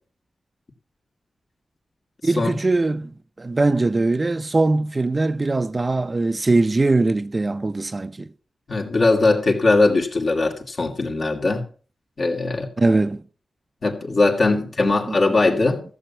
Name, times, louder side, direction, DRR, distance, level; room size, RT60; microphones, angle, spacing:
voice 1, 2.2-3.1 3.4-8.3 12.8-13.2 14.5-14.6 14.8-15.2 15.5-15.6, right 2 dB, 35° right, 0.5 m, -21 dB
voice 2, 8.7-11.7 12.2-12.7 13.8-15.8, left 3 dB, 60° left, 2.3 m, -20 dB
15.0 x 7.2 x 5.6 m
wide cardioid pair, 85°, 0 cm